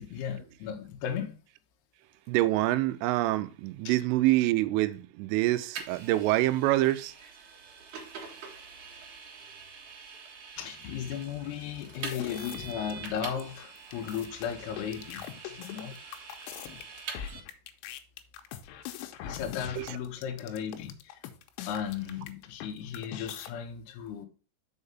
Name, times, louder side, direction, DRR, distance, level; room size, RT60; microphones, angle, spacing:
voice 1, 0.0-1.3 3.9-4.0 10.6-15.3 15.5-16.0 16.9-17.0 19.2-21.2 21.7-24.3, left 8 dB, 75° left, 2.5 m, -36 dB
voice 2, 2.3-7.1 19.8-20.0, right 17 dB, 90° right, 3.1 m, -26 dB
Vehicle, 5.8-17.4, right 5 dB, 65° right, 2.0 m, -45 dB
sound 1, 11.9-13.1 13.4-13.5 13.8-22.7 22.9-23.5, left 10 dB, 90° left, 3.2 m, -42 dB
6.6 x 4.8 x 5.4 m
omnidirectional pair, 5.6 m